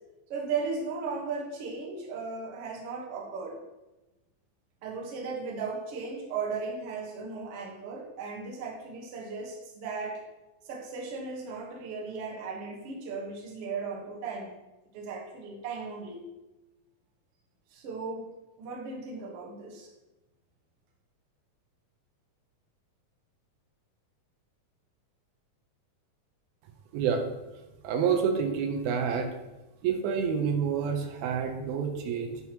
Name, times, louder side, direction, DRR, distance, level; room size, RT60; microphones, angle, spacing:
voice 1, 0.3-3.6 4.8-10.2 10.7-14.5 14.9-16.2 17.7-18.2 18.6-19.9, right 4 dB, 55° right, -1 dB, 1.7 m, -36 dB
voice 2, 26.9-27.2 27.8-29.3 29.8-32.4, right 6 dB, 90° right, 4 dB, 2.7 m, -28 dB
9.4 x 6.0 x 3.0 m, 1.0 s
omnidirectional pair, 4.3 m